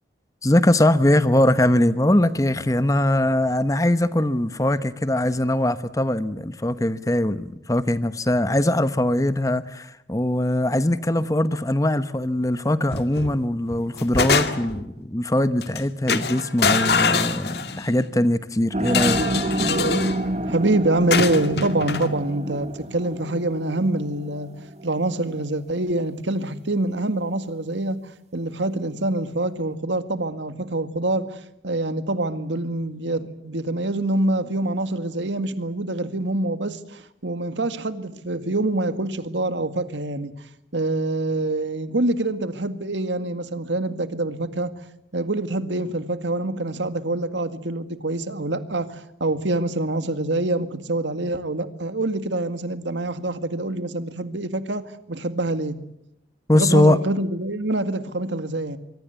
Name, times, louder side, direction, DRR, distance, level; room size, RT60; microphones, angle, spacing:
voice 1, 0.4-19.2 56.5-57.0, left 1 dB, 20° left, 1.0 m, -21 dB
sound 1, 12.9-13.3 13.7-14.8 15.6-15.8 16.1-17.9 18.8-20.2 21.1-22.1, left 4 dB, 60° left, 2.1 m, -24 dB
sound 2, 18.7-24.9, right 1 dB, 35° right, 1.3 m, -28 dB
voice 2, 20.5-24.5 24.8-28.0 28.3-40.3 40.7-44.7 45.1-55.8 56.5-58.8, right 2 dB, 80° right, 2.0 m, -25 dB
26.0 x 23.0 x 8.2 m
head